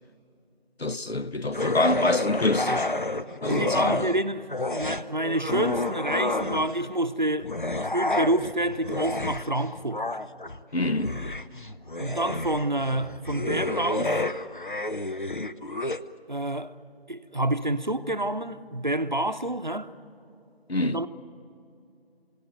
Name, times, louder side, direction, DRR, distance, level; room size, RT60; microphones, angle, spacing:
voice 1, 0.8-2.9 3.4-4.1 10.7-11.2 20.7-21.0, left 2 dB, 75° left, 1.0 m, -26 dB
sound 1, 1.5-4.2 4.5-6.9 7.4-16.0, left 2 dB, 50° left, 0.7 m, -30 dB
voice 2, 3.4-7.5 7.9-10.0 12.0-14.2 16.3-16.7 17.1-19.9 20.8-21.1, right 1 dB, 45° right, 0.9 m, -28 dB
27.5 x 17.0 x 9.5 m
figure-of-eight pair, 175°, 31 cm